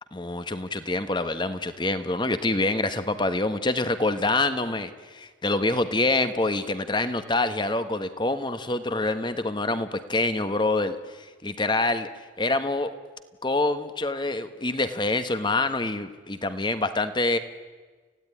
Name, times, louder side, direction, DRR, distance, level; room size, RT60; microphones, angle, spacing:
voice 1, 0.1-12.9 13.4-17.4, left 2 dB, 25° left, 10 dB, 1.3 m, -26 dB
29.5 x 16.5 x 9.9 m, 1.4 s
head